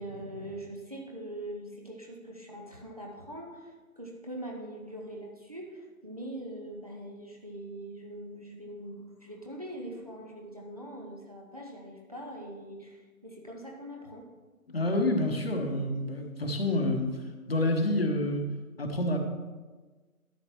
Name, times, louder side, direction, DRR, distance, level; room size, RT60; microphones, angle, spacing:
voice 1, 0.0-14.3, right 1 dB, 25° right, 0 dB, 0.7 m, -42 dB
voice 2, 14.7-17.1 17.5-18.4 18.8-19.2, left 1 dB, 40° left, 3 dB, 1.1 m, -28 dB
12.5 x 7.8 x 3.0 m, 1.3 s
figure-of-eight pair, 150°, 44 cm